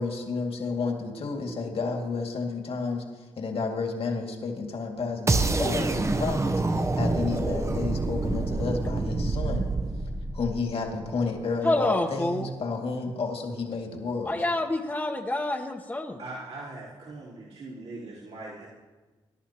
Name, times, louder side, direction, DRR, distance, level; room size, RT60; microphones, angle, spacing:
voice 1, 0.0-9.7 10.3-14.3, left 4 dB, 60° left, 2 dB, 2.2 m, -31 dB
sound 1, 5.3-11.2, right 2 dB, 25° right, 0.8 m, -27 dB
voice 2, 11.6-12.5 14.3-16.2, left 2 dB, 15° left, 1 dB, 1.0 m, -27 dB
voice 3, 16.2-18.7, right 2 dB, 70° right, -8 dB, 3.7 m, -40 dB
19.5 x 11.0 x 2.9 m, 1.3 s
supercardioid pair, 55°, 11 cm